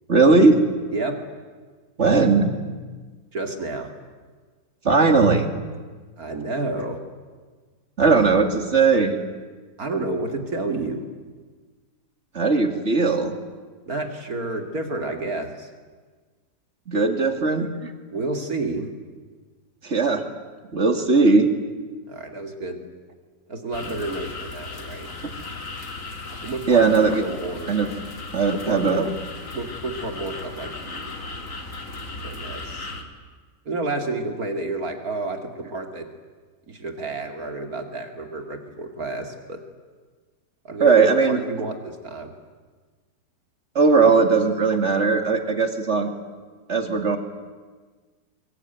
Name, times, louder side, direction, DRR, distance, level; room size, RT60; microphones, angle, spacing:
voice 1, 0.1-0.6 2.0-2.5 4.8-5.5 8.0-9.1 12.3-13.3 16.9-17.9 19.8-20.2 20.7-21.5 26.7-27.2 27.7-27.9 28.3-29.0 40.8-41.4 43.8-46.1 46.7-47.2, right 4 dB, 40° right, 6 dB, 2.5 m, -18 dB
voice 2, 3.3-3.9 6.2-7.0 9.8-11.1 13.9-15.7 18.1-18.9 22.1-22.8 23.5-25.1 26.4-26.9 27.2-27.8 28.7-29.1 29.5-31.2 32.2-32.9 33.6-36.1 36.7-39.6 40.6-42.3, right 2 dB, 55° right, 5 dB, 2.9 m, -30 dB
sound 1, 23.7-33.0, left 3 dB, 50° left, 2.9 m, -36 dB
24.0 x 23.0 x 9.3 m, 1.4 s
omnidirectional pair, 1.8 m